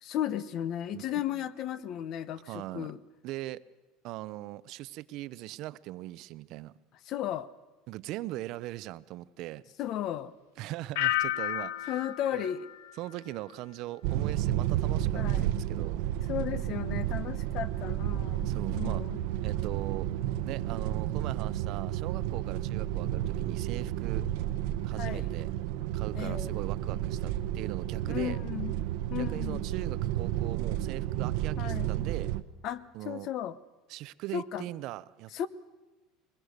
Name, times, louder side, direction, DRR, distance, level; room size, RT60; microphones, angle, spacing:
voice 1, 0.0-3.0 7.1-7.5 9.8-10.3 11.9-12.7 15.1-15.5 16.3-19.2 25.0-25.3 26.1-26.5 28.1-28.7 29.1-29.7 31.6-31.9 32.6-33.6 34.3-34.7 35.3-35.5, left 11 dB, 45° left, 17 dB, 0.9 m, -35 dB
voice 2, 2.5-2.9 3.2-3.6 4.0-6.7 7.9-9.6 10.6-11.9 12.3-12.5 13.0-16.0 18.4-19.0 19.4-20.1 20.5-24.3 24.8-25.5 25.9-28.4 29.2-32.3 32.9-33.3 33.9-35.5, right 16 dB, 55° right, 17 dB, 0.6 m, -40 dB
sound 1, 11.0-13.8 14.1-14.6, left 14 dB, 80° left, 0.6 m, -34 dB
sound 2, 14.0-32.4, right 12 dB, 75° right, 0.9 m, -31 dB
21.5 x 20.5 x 6.6 m, 1.2 s
cardioid pair, 145°, 0 cm